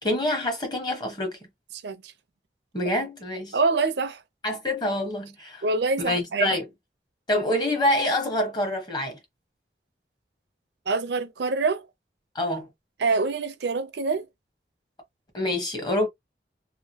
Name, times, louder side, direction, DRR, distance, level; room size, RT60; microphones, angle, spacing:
voice 1, 0.0-1.4 2.7-3.6 4.4-5.6 6.1-6.7 7.3-9.2 12.3-12.7 15.3-16.1, left 1 dB, 25° left, 1.1 m, -26 dB
voice 2, 3.5-4.2 5.6-6.5 10.9-11.9 13.0-14.3, right 4 dB, 75° right, 0.5 m, -25 dB
2.9 x 2.7 x 2.7 m
head